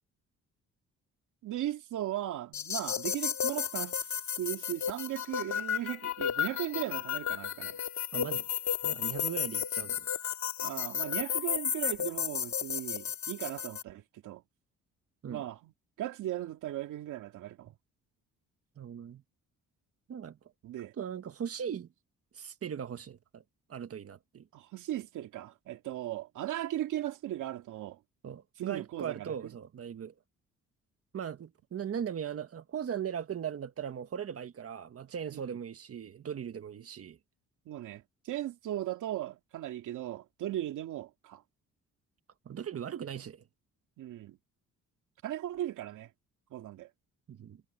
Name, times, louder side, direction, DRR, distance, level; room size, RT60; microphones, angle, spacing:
voice 1, 1.4-4.0 4.4-7.8 10.6-14.4 15.3-15.7 16.0-17.7 20.6-20.9 24.5-28.0 28.6-29.5 35.3-35.4 37.7-41.4 44.0-44.4 45.2-46.1 46.5-46.9, right 13 dB, 80° right, 2.7 m, -37 dB
sound 1, 2.5-13.8, left 9 dB, 65° left, 2.7 m, -33 dB
voice 2, 8.1-8.5 8.8-10.1 15.2-15.4 18.8-19.2 20.1-20.4 20.8-21.9 22.3-23.4 23.7-24.5 28.2-30.1 31.1-37.2 42.4-43.4 47.3-47.6, right 8 dB, 50° right, 1.6 m, -39 dB
cardioid pair, 90°, 30 cm